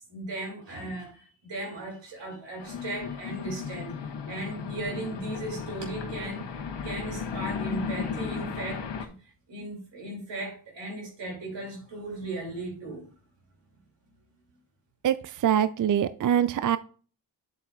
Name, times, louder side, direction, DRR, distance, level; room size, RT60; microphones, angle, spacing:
voice 1, 0.1-6.4 6.8-9.1 9.5-13.1, right 2 dB, 85° right, 2.8 m, -37 dB
sound 1, 2.6-9.1, left 6 dB, 80° left, 1.1 m, -35 dB
voice 2, 15.0-16.8, right 9 dB, 50° right, 0.5 m, -24 dB
8.5 x 7.5 x 2.4 m
cardioid pair, 50°, 42 cm